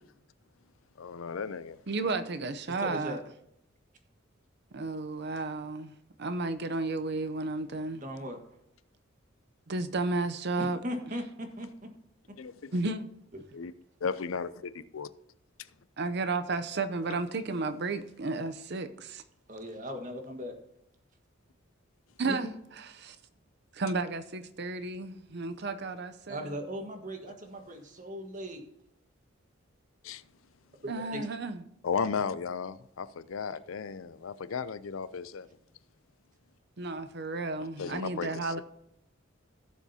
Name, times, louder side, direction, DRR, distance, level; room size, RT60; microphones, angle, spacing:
voice 1, 1.0-1.8 12.4-12.8 13.5-13.7 14.0-15.1 30.0-30.2 31.8-35.5 37.8-38.6, left 5 dB, 90° left, 0.5 m, -35 dB
voice 2, 1.9-3.2 4.7-8.0 9.7-10.8 12.7-13.1 16.0-19.2 22.2-22.5 22.8-23.2 23.7-26.6 30.9-31.6 36.8-38.6, right 3 dB, 55° right, 0.6 m, -33 dB
voice 3, 2.7-3.2 7.9-8.4 10.6-11.9 19.5-20.5 22.3-22.4 26.3-28.6 30.8-31.3, equal, 40° right, 1.5 m, -38 dB
16.5 x 7.3 x 2.8 m
head